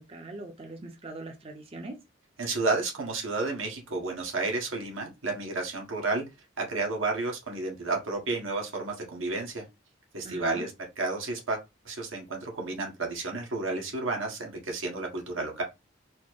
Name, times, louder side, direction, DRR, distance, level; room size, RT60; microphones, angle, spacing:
voice 1, 0.0-2.0 10.2-10.6, right 2 dB, 30° right, 0.7 m, -41 dB
voice 2, 2.4-6.2 6.6-9.6 10.1-10.7 11.0-11.6 11.8-15.6, right 3 dB, 90° right, 1.6 m, -31 dB
4.4 x 2.1 x 4.6 m
head